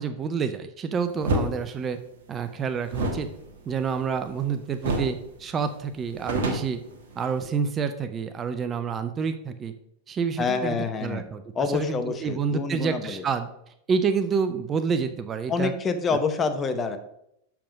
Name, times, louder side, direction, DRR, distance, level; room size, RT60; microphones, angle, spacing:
voice 1, 0.0-2.0 2.3-3.3 3.7-6.8 7.2-9.7 10.1-11.4 11.7-13.5 13.9-15.7, right 6 dB, 25° right, 9 dB, 0.5 m, -28 dB
sound 1, 1.2-1.5 2.9-4.4 4.8-5.2 5.5-5.6 5.9-7.5, right 2 dB, 60° right, 1.4 m, -28 dB
voice 2, 10.4-11.2 11.5-13.2 15.5-17.0, left 4 dB, 25° left, 9 dB, 0.8 m, -27 dB
6.6 x 5.9 x 5.2 m, 0.78 s
figure-of-eight pair, 90°, 0 cm